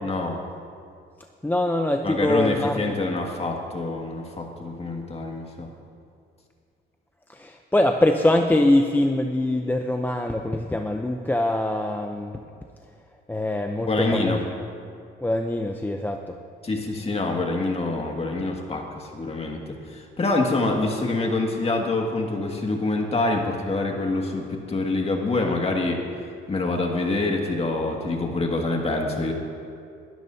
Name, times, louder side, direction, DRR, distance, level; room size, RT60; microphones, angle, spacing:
voice 1, 0.0-0.4 2.0-5.7 13.9-14.4 16.6-26.0 26.5-29.3, left 2 dB, 30° left, 1 dB, 2.0 m, -26 dB
voice 2, 1.4-3.0 7.3-12.4 13.3-14.4 15.2-16.4, left 1 dB, 10° left, 4 dB, 0.6 m, -23 dB
20.5 x 12.0 x 2.7 m, 2.3 s
cardioid pair, 90°, 20 cm